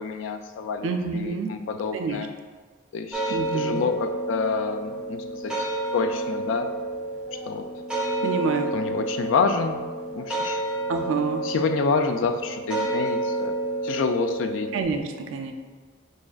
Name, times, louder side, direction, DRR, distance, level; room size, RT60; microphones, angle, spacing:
voice 1, 0.0-2.3 2.9-6.7 7.3-7.6 8.7-9.8 10.1-10.6 11.4-13.5 13.8-14.7, left 5 dB, 75° left, 6 dB, 0.3 m, -28 dB
voice 2, 0.8-1.5 1.9-2.3 3.3-3.8 8.2-8.7 10.9-11.4 14.7-15.5, right 4 dB, 80° right, 5 dB, 0.4 m, -27 dB
sound 1, 3.1-14.8, right 2 dB, 5° right, 0.9 m, -30 dB
6.1 x 2.4 x 2.3 m, 1.4 s
head